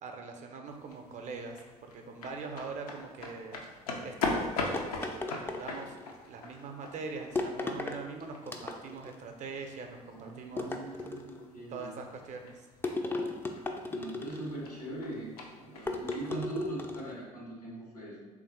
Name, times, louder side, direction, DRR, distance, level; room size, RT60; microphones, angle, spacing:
voice 1, 0.0-3.6 4.0-6.0 6.3-11.1 11.7-12.7, right 4 dB, 40° right, 4 dB, 0.6 m, -43 dB
sound 1, 0.7-16.3, left 3 dB, 70° left, 0.6 m, -41 dB
sound 2, 4.7-6.1 7.4-8.0 8.5-9.1 10.6-11.5 12.8-14.6 15.9-17.1, left 2 dB, 10° left, 0.4 m, -36 dB
voice 2, 10.1-11.9 13.9-18.3, right 1 dB, 90° left, -5 dB, 1.2 m, -41 dB
3.4 x 2.5 x 3.9 m, 1.4 s
figure-of-eight pair, 55°, 19 cm